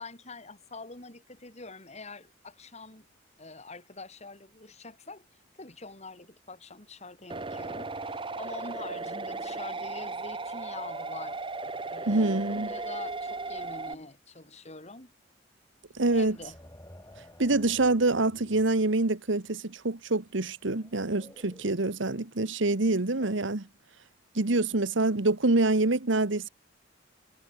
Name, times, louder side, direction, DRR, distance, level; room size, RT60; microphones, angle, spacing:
voice 1, 0.0-3.1 3.4-5.2 5.6-15.1 16.1-16.6 23.2-23.4, left 3 dB, 35° left, 3.9 m, -45 dB
sound 1, 7.3-13.9, right 3 dB, 25° right, 1.2 m, -36 dB
sound 2, 9.1-14.1 15.8-19.0 20.7-21.7, left 1 dB, 15° left, 6.1 m, -50 dB
voice 2, 12.1-12.7 15.9-16.4 17.4-23.7 24.3-26.5, right 2 dB, 70° right, 1.4 m, -26 dB
head